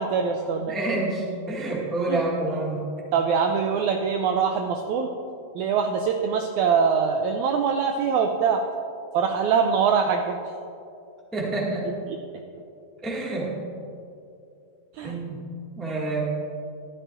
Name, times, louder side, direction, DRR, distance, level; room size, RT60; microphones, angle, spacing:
voice 1, 0.0-0.8 2.1-2.2 3.1-5.1 5.5-8.6 9.1-10.4 12.1-12.4 14.9-15.1, right 6 dB, 85° right, 4 dB, 1.7 m, -23 dB
voice 2, 0.6-2.8 11.3-11.9 13.0-13.5 15.0-15.4 15.8-16.3, right 2 dB, ahead, -5 dB, 0.6 m, -28 dB
13.5 x 11.5 x 2.5 m, 2.5 s
omnidirectional pair, 3.9 m